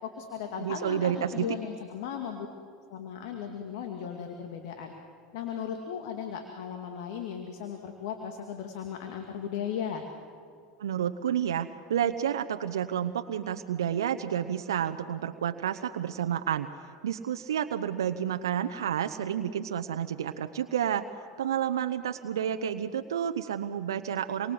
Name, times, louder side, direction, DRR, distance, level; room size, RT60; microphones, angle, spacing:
voice 1, 0.0-2.5 2.9-4.9 5.3-10.0, left 8 dB, 70° left, 4 dB, 2.4 m, -36 dB
voice 2, 0.6-1.5 10.8-16.7 17.0-21.1 21.4-24.5, right 9 dB, 85° right, 7 dB, 0.9 m, -30 dB
27.5 x 23.5 x 7.9 m, 2.2 s
hypercardioid pair, 90°, 2 cm